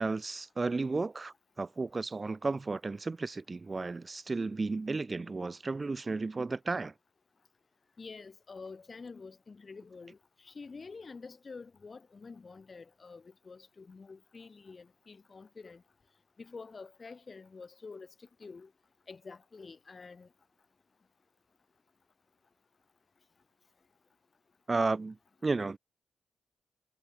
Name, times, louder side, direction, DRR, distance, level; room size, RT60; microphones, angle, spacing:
voice 1, 0.0-6.9 24.7-25.2 25.4-25.8, right 3 dB, 25° right, 0.3 m, -33 dB
voice 2, 8.0-15.8 16.4-18.7 19.1-20.3, left 4 dB, 35° left, 0.5 m, -48 dB
cardioid pair, 100°, 0 cm